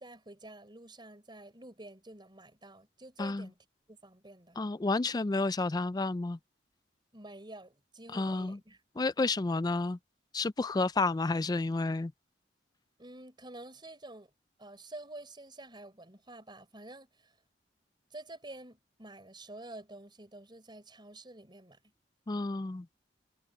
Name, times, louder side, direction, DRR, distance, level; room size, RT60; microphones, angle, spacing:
voice 1, 0.0-3.6 3.9-4.6 7.1-8.8 13.0-14.3 14.6-17.3 18.1-21.8, right 2 dB, 25° right, 4.6 m, -49 dB
voice 2, 4.6-6.4 8.1-8.6 9.0-10.0 10.3-12.1 22.3-22.9, left 3 dB, 20° left, 0.4 m, -30 dB
head